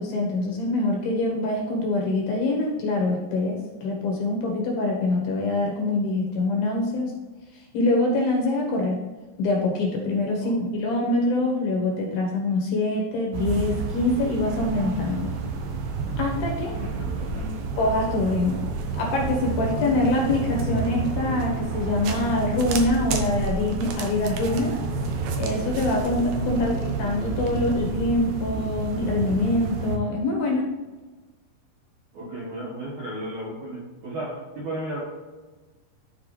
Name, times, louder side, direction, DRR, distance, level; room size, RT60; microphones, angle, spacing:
voice 1, 0.0-7.1 7.7-9.0 9.4-15.3 16.2-16.7 17.8-24.7 25.4-30.7, left 2 dB, 70° left, -1 dB, 2.6 m, -24 dB
sound 1, 13.3-30.0, right 4 dB, 80° right, 2.0 m, -30 dB
voice 2, 16.7-17.7 26.5-26.8 32.1-35.0, right 1 dB, 60° right, -6 dB, 2.0 m, -35 dB
13.0 x 4.6 x 3.2 m, 1.3 s
omnidirectional pair, 5.3 m